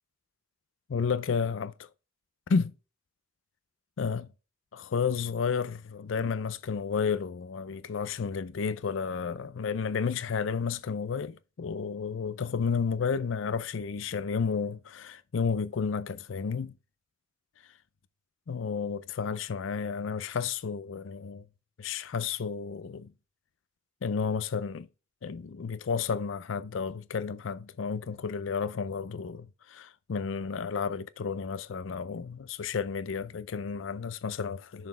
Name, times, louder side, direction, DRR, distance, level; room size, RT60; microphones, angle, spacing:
voice 1, 0.9-1.9 2.5-2.7 4.0-4.3 4.7-16.7 18.5-21.4 21.8-23.1 24.0-24.9 25.2-34.9, left 5 dB, 70° left, 0.4 m, -32 dB
7.0 x 4.1 x 4.7 m
head